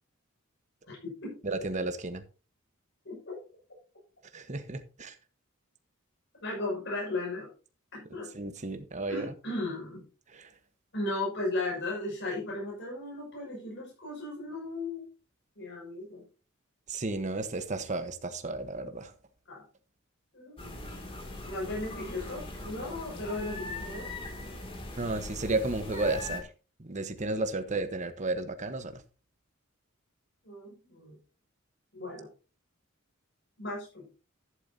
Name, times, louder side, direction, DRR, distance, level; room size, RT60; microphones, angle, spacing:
voice 1, 0.9-1.3 3.0-3.3 6.4-7.5 7.9-8.3 9.1-10.0 10.9-15.1 15.5-16.2 19.5-19.6 20.3-21.0 21.4-24.1 30.4-31.1 31.9-32.3 33.6-34.1, left 2 dB, 60° left, -4 dB, 6.5 m, -36 dB
voice 2, 1.4-2.2 4.3-5.1 8.3-9.3 10.3-10.5 16.9-19.1 25.0-26.5 26.8-29.0, right 2 dB, 35° right, 8 dB, 1.2 m, -33 dB
sound 1, 20.6-26.4, left 2 dB, 25° left, 2.6 m, -40 dB
11.5 x 11.5 x 2.8 m, 0.34 s
head